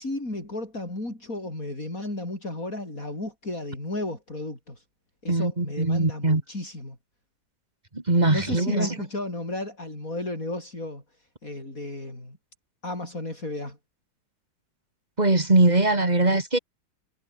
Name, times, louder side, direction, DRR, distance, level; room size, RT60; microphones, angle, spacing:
voice 1, 0.0-4.8 5.2-7.0 8.3-11.0 11.4-12.4 12.8-13.8, left 2 dB, 45° left, 8.4 m, -33 dB
voice 2, 5.3-6.4 7.9-9.0 15.2-16.6, right 2 dB, 20° right, 2.8 m, -21 dB
omnidirectional pair, 2.0 m